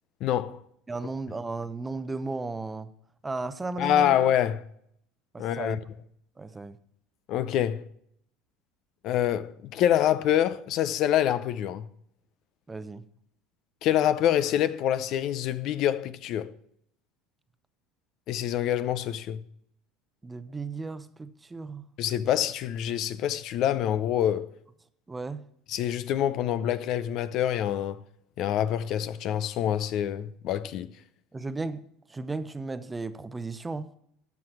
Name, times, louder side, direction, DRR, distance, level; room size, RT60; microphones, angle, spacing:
voice 1, 0.2-0.6 3.8-4.6 5.4-5.8 7.3-7.8 9.0-11.9 13.8-16.5 18.3-19.4 22.0-24.5 25.7-28.0 28.4-30.9, left 11 dB, 60° left, 0.6 m, -26 dB
voice 2, 0.9-2.9 3.2-4.2 5.3-5.8 6.4-6.8 12.7-13.0 20.2-21.8 25.1-25.4 31.3-33.9, right 3 dB, 15° right, 0.7 m, -35 dB
12.5 x 6.0 x 5.8 m
hypercardioid pair, 90°, 0 cm